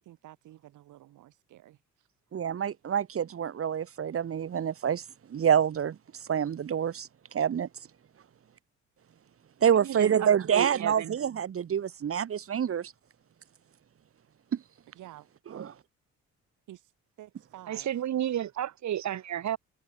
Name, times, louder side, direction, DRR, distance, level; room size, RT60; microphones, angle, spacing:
voice 1, 0.0-2.1 14.9-15.7 16.7-16.9 17.2-18.4, right 14 dB, 85° right, 4.9 m, -52 dB
voice 2, 2.3-5.0 5.3-5.9 6.3-7.1 7.3-7.7 9.6-12.9, right 8 dB, 45° right, 1.6 m, -27 dB
voice 3, 9.7-11.2 17.7-19.6, right 11 dB, 65° right, 2.6 m, -32 dB
cardioid pair, 90°, 30 cm